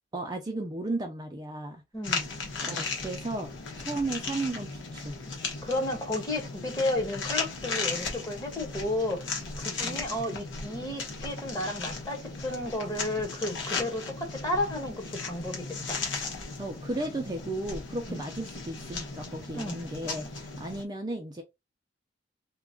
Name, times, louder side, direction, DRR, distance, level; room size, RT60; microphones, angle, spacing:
voice 1, 0.1-1.8 2.6-3.5 3.8-5.1 9.8-10.1 16.6-21.4, right 2 dB, 20° right, 0.5 m, -34 dB
voice 2, 1.9-2.3 5.6-9.3 9.6-16.0 18.1-18.2 19.5-19.8, left 1 dB, 20° left, 1.2 m, -32 dB
sound 1, 2.0-20.8, left 4 dB, 80° left, 1.0 m, -36 dB
2.9 x 2.3 x 3.6 m
head